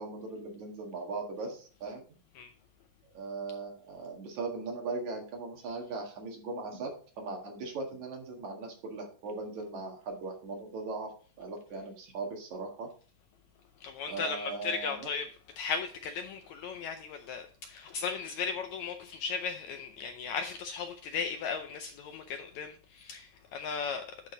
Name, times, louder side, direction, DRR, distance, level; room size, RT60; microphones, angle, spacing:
voice 1, 0.0-2.0 3.1-11.1 11.4-12.9 14.0-15.1, right 3 dB, 60° right, 3.1 m, -39 dB
voice 2, 13.8-24.1, left 5 dB, 75° left, 1.7 m, -36 dB
11.0 x 5.3 x 3.8 m
omnidirectional pair, 3.8 m